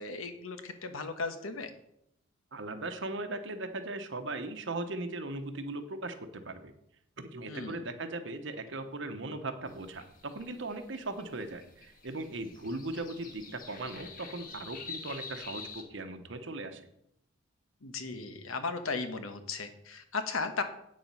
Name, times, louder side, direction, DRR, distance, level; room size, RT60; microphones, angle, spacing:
voice 1, 0.0-1.7 7.5-7.8 17.8-20.6, left 4 dB, 75° left, 8 dB, 1.1 m, -36 dB
voice 2, 2.5-6.7 7.2-16.9, right 2 dB, 55° right, 8 dB, 1.0 m, -38 dB
sound 1, 9.7-15.8, left 5 dB, 40° left, 1.3 m, -47 dB
8.6 x 7.3 x 5.5 m, 0.76 s
head